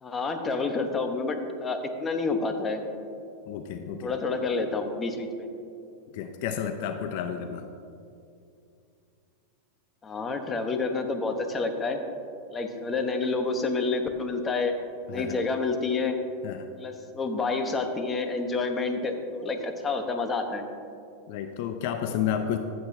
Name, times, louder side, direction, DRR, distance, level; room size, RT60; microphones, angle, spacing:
voice 1, 0.0-2.8 4.0-5.5 10.0-12.0 12.5-14.7 15.1-16.2 16.8-20.6, left 3 dB, 20° left, 6 dB, 0.9 m, -29 dB
voice 2, 3.5-4.2 6.1-7.6 15.1-15.4 16.4-16.7 21.3-22.6, left 9 dB, 60° left, 7 dB, 0.6 m, -31 dB
14.5 x 7.8 x 2.7 m, 2.5 s
hypercardioid pair, 120°, 0 cm